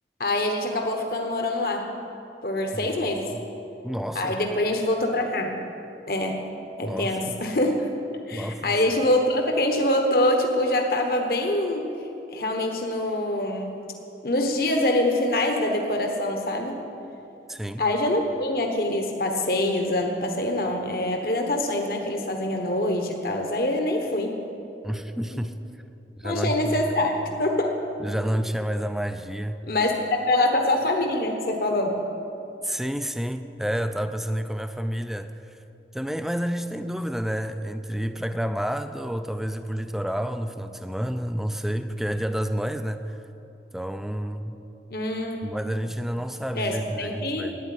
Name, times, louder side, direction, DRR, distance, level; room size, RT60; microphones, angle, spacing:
voice 1, 0.2-1.9 2.4-3.3 4.1-5.5 6.1-6.4 6.8-7.9 8.3-11.9 12.3-13.8 14.2-16.8 17.8-24.4 25.3-25.4 26.2-27.7 29.7-32.0 44.9-45.5 46.6-47.5, left 1 dB, 55° left, 3 dB, 1.2 m, -25 dB
voice 2, 3.8-4.4 6.8-7.4 8.3-8.7 17.5-17.8 24.8-25.5 26.2-26.9 28.0-29.6 32.6-35.3 35.9-43.0 43.7-44.6 45.4-47.6, equal, ahead, 9 dB, 0.4 m, -29 dB
11.5 x 9.4 x 9.8 m, 2.9 s
head